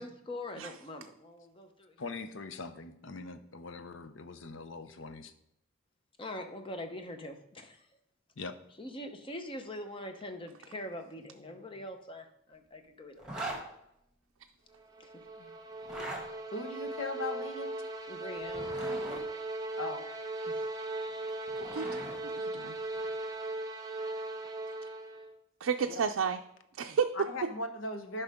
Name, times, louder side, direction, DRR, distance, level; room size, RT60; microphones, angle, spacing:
voice 1, 0.0-2.0 6.2-7.8 8.8-13.3 15.0-15.1 18.1-18.7 20.5-20.6, left 1 dB, 25° left, 6 dB, 0.8 m, -43 dB
voice 2, 2.0-5.3 8.4-8.5 11.5-11.7 15.4-15.6 22.9-23.1, left 4 dB, 65° left, 10 dB, 0.6 m, -43 dB
Zipper (clothing), 13.2-13.6 15.7-16.2 18.4-19.2 21.1-22.2, right 2 dB, 5° right, 1.9 m, -40 dB
sound 1, 14.8-25.4, right 2 dB, 20° right, 0.7 m, -38 dB
voice 3, 16.5-17.7 19.8-20.0 25.8-25.9 27.1-28.2, left 2 dB, 90° left, 7 dB, 1.1 m, -38 dB
voice 4, 21.6-21.9 22.3-22.8 25.6-26.4 26.8-27.1, right 6 dB, 85° right, 4 dB, 0.4 m, -31 dB
10.5 x 5.5 x 3.6 m, 0.79 s
head